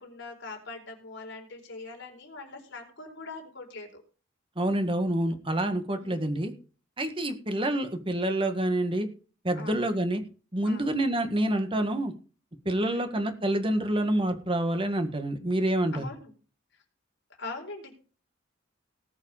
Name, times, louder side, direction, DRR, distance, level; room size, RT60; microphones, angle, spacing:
voice 1, 0.0-4.0 5.9-6.3 9.5-9.8 10.6-10.9 12.8-13.1 15.9-16.3 17.4-17.9, left 3 dB, 65° left, 2 dB, 4.3 m, -42 dB
voice 2, 4.5-6.5 7.0-9.1 9.4-10.2 10.5-12.1 12.6-16.1, right 1 dB, 25° right, 7 dB, 1.8 m, -27 dB
18.5 x 6.5 x 5.0 m, 0.37 s
head